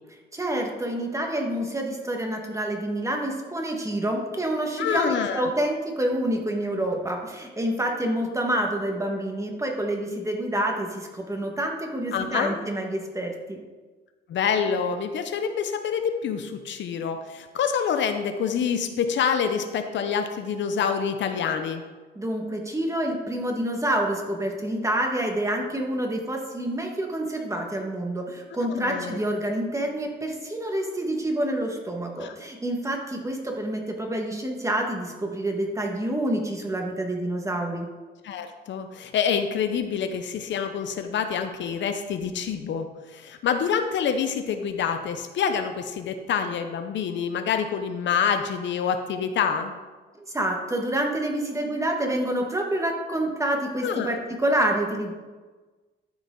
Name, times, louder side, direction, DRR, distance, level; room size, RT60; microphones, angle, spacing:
voice 1, 0.3-13.6 22.1-37.9 50.2-55.1, right 1 dB, 15° right, 2 dB, 1.6 m, -27 dB
voice 2, 4.8-5.5 12.1-12.6 14.3-21.8 28.6-29.2 32.2-32.3 38.2-49.7 53.8-54.2, left 7 dB, 65° left, 7 dB, 0.7 m, -27 dB
12.5 x 4.9 x 3.8 m, 1.3 s
cardioid pair, 90°, 20 cm